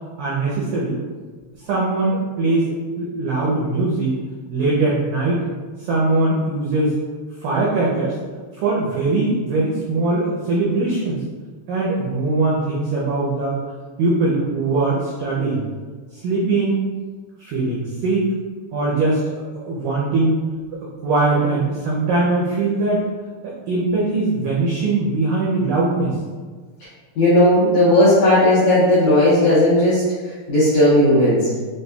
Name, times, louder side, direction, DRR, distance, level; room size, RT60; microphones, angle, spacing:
voice 1, 0.2-1.0 1.7-4.1 4.5-5.4 5.9-6.9 7.4-8.2 8.6-11.2 11.7-13.6 14.0-15.6 16.2-16.8 17.4-18.3 18.7-19.2 19.5-20.4 21.0-23.0 23.4-26.2, right 2 dB, 85° right, -5 dB, 1.9 m, -21 dB
voice 2, 27.2-30.0 30.5-31.4, left 1 dB, 80° left, -11 dB, 1.6 m, -15 dB
6.3 x 2.5 x 2.2 m, 1.5 s
omnidirectional pair, 4.5 m